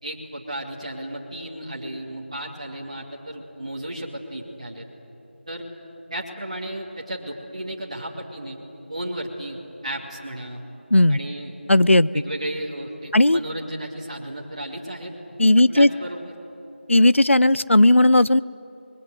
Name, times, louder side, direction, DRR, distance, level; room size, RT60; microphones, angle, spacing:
voice 1, 0.0-4.9 5.5-5.7 6.1-8.6 8.9-10.6 11.1-11.5 12.1-15.1 15.6-16.3, right 1 dB, 30° right, -3 dB, 2.6 m, -34 dB
voice 2, 11.7-12.1 13.1-13.4 15.4-15.9 16.9-18.4, left 1 dB, 90° left, 18 dB, 0.6 m, -15 dB
26.0 x 21.5 x 9.4 m, 2.9 s
figure-of-eight pair, 175°, 7 cm